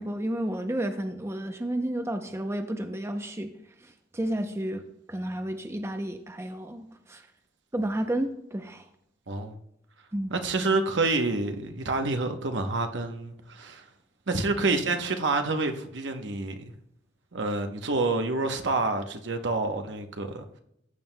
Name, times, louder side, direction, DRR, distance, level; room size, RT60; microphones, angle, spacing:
voice 1, 0.0-3.5 3.8-4.8 5.1-7.2 7.7-8.8 10.1-10.3, right 1 dB, 15° right, 0.6 m, -31 dB
voice 2, 10.3-13.8 14.3-16.7 17.3-20.6, right 3 dB, 70° right, 0.9 m, -28 dB
14.5 x 9.0 x 2.2 m
head